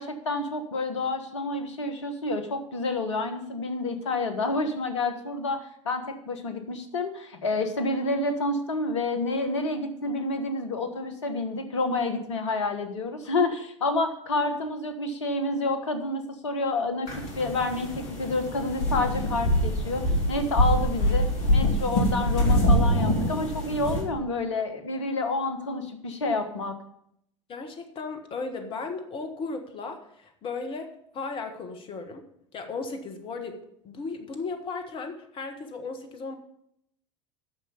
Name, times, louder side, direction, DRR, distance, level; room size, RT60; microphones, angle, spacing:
voice 1, 0.0-26.8, left 2 dB, 70° left, 7 dB, 1.4 m, -29 dB
sound 1, 17.1-24.0, equal, 50° left, 2.9 m, -24 dB
voice 2, 27.5-32.2 32.5-33.6 33.8-36.4, left 4 dB, 35° left, 6 dB, 1.5 m, -36 dB
9.7 x 6.5 x 6.9 m, 0.73 s
figure-of-eight pair, 75°, 16 cm